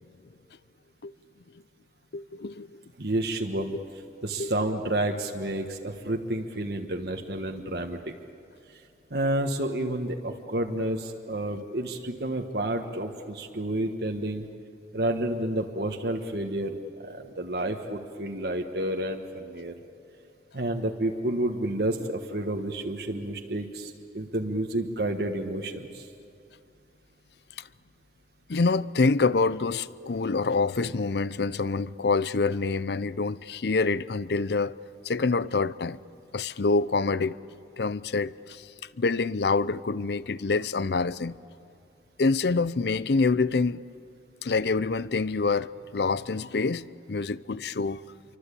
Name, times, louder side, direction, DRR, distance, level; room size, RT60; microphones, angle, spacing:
voice 1, 2.1-2.8 4.4-4.5 27.6-27.7 28.5-34.8 35.0-36.0 36.3-37.4 37.8-41.3 42.2-43.8 44.4-48.0, left 4 dB, 70° left, 0.6 m, -26 dB
voice 2, 3.0-3.8 4.2-8.1 9.1-14.5 14.9-19.7 20.5-26.1, right 1 dB, 65° right, 1.5 m, -30 dB
28.0 x 24.5 x 8.5 m
head